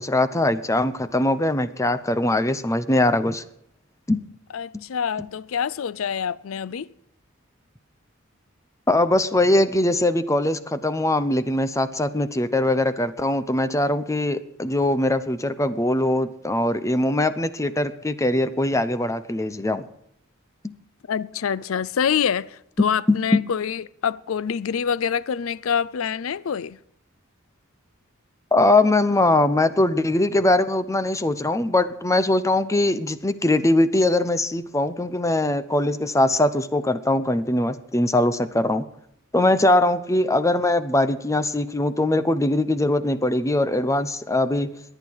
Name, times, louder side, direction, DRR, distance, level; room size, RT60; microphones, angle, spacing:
voice 1, 0.0-3.4 4.1-4.2 4.7-4.8 8.9-19.9 23.1-23.2 28.5-38.8 39.3-44.7, left 1 dB, 15° left, 0.7 m, -21 dB
voice 2, 4.5-6.9 21.1-26.8, left 7 dB, 80° left, 0.5 m, -26 dB
22.0 x 9.1 x 4.7 m
head